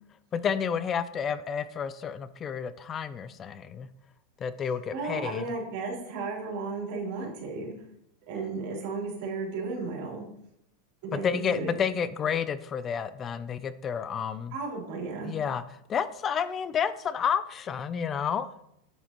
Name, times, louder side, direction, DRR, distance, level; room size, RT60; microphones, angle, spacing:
voice 1, 0.3-3.9 4.4-5.4 11.1-14.5 15.2-15.6 15.9-18.5, left 7 dB, 30° left, 14 dB, 0.4 m, -30 dB
voice 2, 4.9-7.7 8.2-10.2 11.0-11.8 14.5-15.3, right 4 dB, 60° right, -2 dB, 3.4 m, -34 dB
8.2 x 7.6 x 3.0 m, 0.78 s
hypercardioid pair, 115°, 0 cm